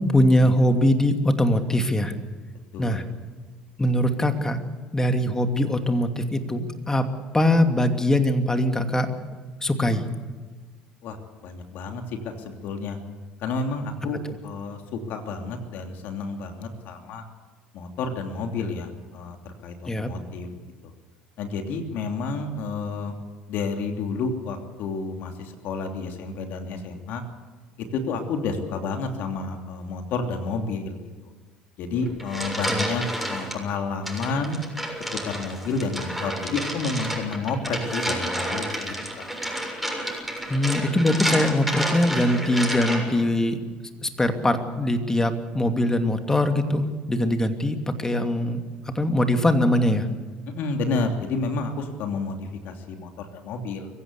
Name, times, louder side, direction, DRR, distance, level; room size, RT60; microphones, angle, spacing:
voice 1, 0.0-2.1 2.8-3.0 3.8-4.6 4.9-7.1 7.3-9.1 9.6-10.0 19.9-20.1 32.7-32.9 40.5-43.6 44.0-48.6 49.0-50.1, left 1 dB, 15° left, 6 dB, 2.7 m, -22 dB
voice 2, 2.7-3.0 11.0-11.2 11.4-13.0 13.4-17.2 17.7-20.5 21.4-23.1 23.5-27.2 27.9-31.0 31.8-34.6 35.2-39.2 50.5-53.9, left 4 dB, 60° left, 4 dB, 3.0 m, -30 dB
sound 1, 32.0-33.6 34.1-43.2, right 1 dB, ahead, 6.9 m, -30 dB
24.0 x 15.5 x 8.3 m, 1.4 s
hypercardioid pair, 65°, 4 cm